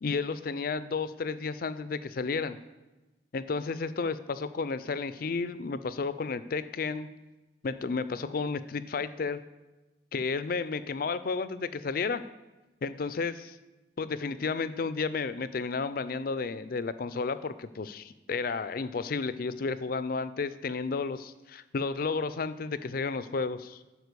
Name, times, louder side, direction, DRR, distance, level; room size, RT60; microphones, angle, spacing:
voice 1, 0.0-2.6 3.3-7.1 7.6-9.4 10.1-12.2 12.8-13.5 14.0-18.0 18.3-23.8, left 4 dB, 55° left, 14 dB, 0.4 m, -32 dB
10.5 x 4.4 x 6.8 m, 1.1 s
head